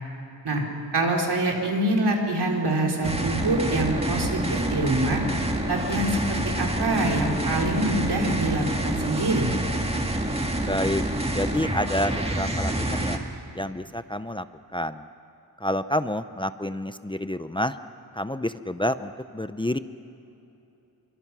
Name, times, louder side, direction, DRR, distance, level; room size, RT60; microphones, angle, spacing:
voice 1, 0.9-5.2 5.7-9.5, right 2 dB, 85° right, 0 dB, 4.0 m, -25 dB
sound 1, 3.0-13.2, right 1 dB, 15° right, 1.9 m, -27 dB
voice 2, 10.6-11.0 11.3-13.2 13.5-14.4 14.7-15.0 15.6-17.8 18.2-19.8, left 1 dB, 15° left, 11 dB, 0.6 m, -28 dB
29.0 x 23.5 x 6.1 m, 3.0 s
wide cardioid pair, 125°, 39 cm